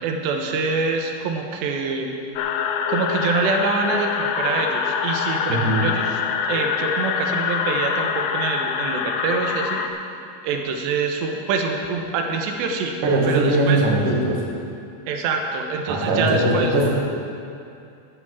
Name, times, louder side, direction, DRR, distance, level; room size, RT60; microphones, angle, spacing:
voice 1, 0.0-2.1 2.9-6.2 6.5-9.9 10.4-13.0 13.3-13.8 15.1-16.7, right 4 dB, 75° right, 3 dB, 3.1 m, -25 dB
sound 1, 2.4-9.9, left 7 dB, 90° left, 2.2 m, -25 dB
voice 2, 5.5-5.8 13.0-14.4 15.9-16.9, right 1 dB, 55° right, -3 dB, 2.9 m, -20 dB
13.5 x 11.0 x 4.8 m, 2.5 s
omnidirectional pair, 5.3 m